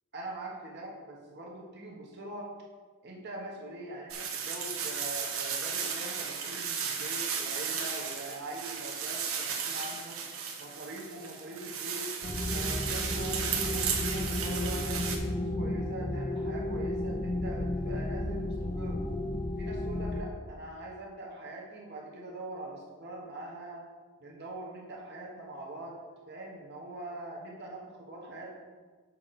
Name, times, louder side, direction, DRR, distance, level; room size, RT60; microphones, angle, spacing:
voice 1, 0.1-2.6 3.0-10.2 10.6-12.1 12.5-19.1 19.6-23.8 24.2-26.0 26.3-28.6, right 1 dB, 50° right, -2 dB, 1.4 m, -43 dB
sound 1, 4.1-15.2, right 6 dB, 65° right, 1.1 m, -35 dB
sound 2, 12.2-20.2, left 1 dB, 20° left, 0.5 m, -33 dB
7.3 x 6.2 x 4.3 m, 1.4 s
head